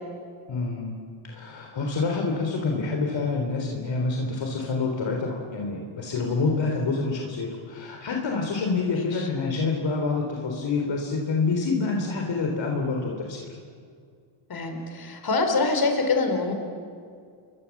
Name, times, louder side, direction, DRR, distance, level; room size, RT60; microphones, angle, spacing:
voice 1, 0.5-1.0 1.2-13.4, left 4 dB, 60° left, 1 dB, 3.8 m, -27 dB
voice 2, 8.9-9.3 14.5-16.5, left 3 dB, 45° left, 4 dB, 4.7 m, -25 dB
29.0 x 22.5 x 7.3 m, 2.2 s
cardioid pair, 110°, 50 cm